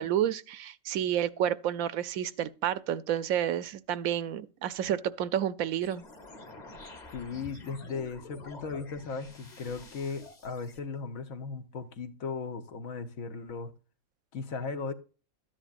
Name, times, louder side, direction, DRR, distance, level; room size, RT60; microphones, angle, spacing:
voice 1, 0.0-6.0, right 10 dB, 75° right, 1.0 m, -30 dB
sound 1, 5.8-10.8, left 2 dB, 30° left, 1.3 m, -49 dB
voice 2, 7.1-13.7 14.3-14.9, left 4 dB, 65° left, 1.5 m, -37 dB
13.0 x 9.9 x 2.5 m
omnidirectional pair, 1.5 m